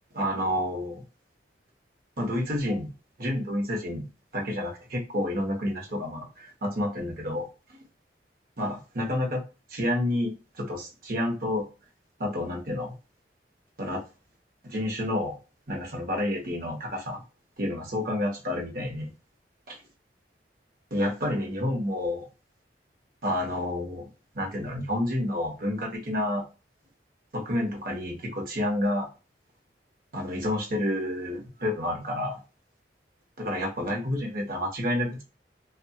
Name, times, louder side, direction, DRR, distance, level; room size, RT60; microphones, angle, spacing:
voice 1, 0.1-1.0 2.2-2.9 3.2-4.1 4.3-7.8 8.6-9.4 9.7-11.7 12.2-12.9 13.8-14.0 14.6-15.4 15.7-17.2 17.6-19.1 19.7-19.8 20.9-22.3 23.2-24.0 24.3-26.4 27.3-29.1 30.1-32.4 33.4-35.2, left 1 dB, 55° right, 0 dB, 0.9 m, -29 dB
2.7 x 2.3 x 2.2 m, 0.31 s
head